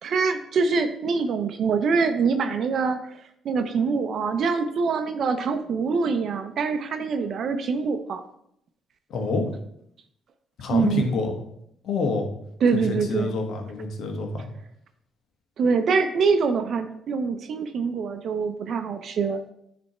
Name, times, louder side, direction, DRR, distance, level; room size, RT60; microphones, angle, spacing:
voice 1, 0.0-3.2 3.4-8.2 10.7-11.1 12.6-13.4 15.6-19.5, right 5 dB, 60° right, 7 dB, 0.6 m, -24 dB
voice 2, 9.1-9.4 10.6-11.3 11.8-12.3 12.7-14.5, left 3 dB, 70° left, 3 dB, 1.4 m, -27 dB
9.5 x 3.4 x 4.2 m, 0.73 s
cardioid pair, 90°, 0 cm